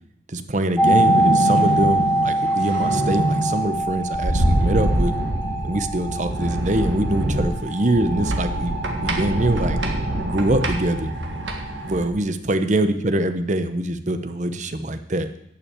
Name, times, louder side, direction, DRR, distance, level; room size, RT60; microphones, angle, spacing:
voice 1, 0.3-5.1 5.6-9.8 10.2-11.1 11.8-15.3, right 1 dB, 40° right, 10 dB, 0.8 m, -24 dB
sound 1, 0.8-10.5 10.8-10.9, right 1 dB, 5° left, 0.5 m, -24 dB
sound 2, 0.8-12.1, right 1 dB, 85° right, 1.8 m, -25 dB
11.0 x 5.9 x 8.8 m, 0.79 s
head